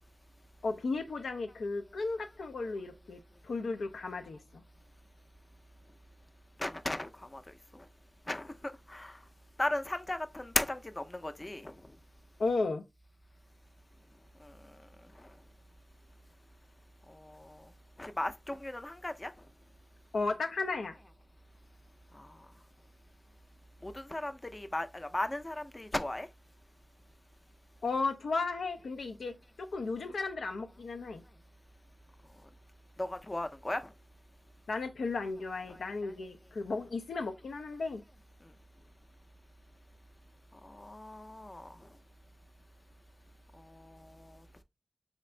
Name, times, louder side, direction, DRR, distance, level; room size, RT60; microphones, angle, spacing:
voice 1, 0.6-4.6 12.4-12.8 20.1-21.0 27.8-31.2 34.7-38.0, left 3 dB, 90° left, 0.4 m, -34 dB
voice 2, 6.6-7.4 8.3-8.5 8.9-9.1 9.6-11.7 18.0-19.3 23.8-26.3 33.0-33.8 40.8-41.7, left 1 dB, 30° left, 0.5 m, -35 dB
3.5 x 2.5 x 3.1 m
cardioid pair, 40°, 0 cm